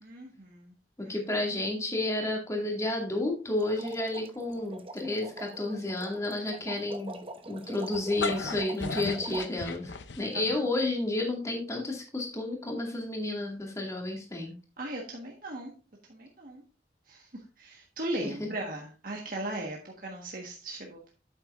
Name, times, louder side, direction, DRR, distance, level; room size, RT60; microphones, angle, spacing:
voice 1, 0.0-0.7 1.0-1.2 10.3-10.6 14.8-15.7 16.1-16.6 17.1-21.1, right 1 dB, 50° right, 0 dB, 1.4 m, -38 dB
voice 2, 1.0-7.2 7.5-14.5, left 2 dB, 20° left, 0 dB, 2.3 m, -31 dB
sound 1, 3.6-9.4, right 2 dB, 30° right, 0.8 m, -43 dB
sound 2, 7.9-10.5, left 4 dB, 85° left, 0.7 m, -35 dB
8.6 x 8.1 x 2.5 m, 0.33 s
head